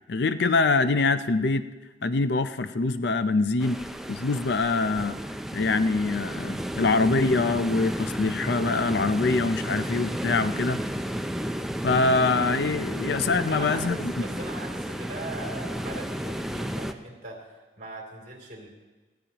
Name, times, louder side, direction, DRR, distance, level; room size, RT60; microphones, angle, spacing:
voice 1, 0.1-1.6 2.0-5.2 5.5-10.8 11.8-14.1, left 3 dB, 60° left, 11 dB, 0.5 m, -24 dB
sound 1, 3.6-16.9, equal, ahead, 0.5 m, -32 dB
voice 2, 13.5-18.7, right 2 dB, 45° right, -1 dB, 3.1 m, -40 dB
19.0 x 15.5 x 2.9 m, 1.3 s
head